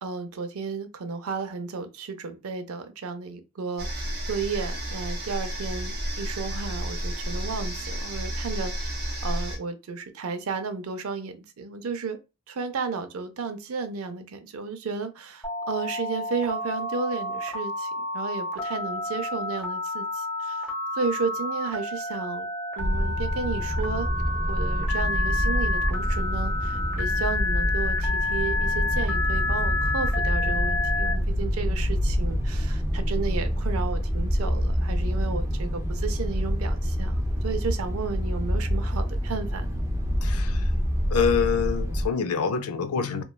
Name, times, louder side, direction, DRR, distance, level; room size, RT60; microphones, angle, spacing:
voice 1, 0.0-12.2 12.5-22.5 22.8-24.1 24.5-39.8, right 4 dB, 75° right, 0.5 m, -33 dB
sound 1, 3.8-9.6, right 1 dB, 45° right, 0.8 m, -31 dB
Telephone, 15.4-31.1, left 3 dB, 10° left, 0.9 m, -30 dB
sound 2, 22.8-42.1, equal, 10° right, 0.4 m, -26 dB
voice 2, 40.2-40.6 41.1-43.2, left 6 dB, 80° left, 0.4 m, -26 dB
3.0 x 2.2 x 2.2 m
head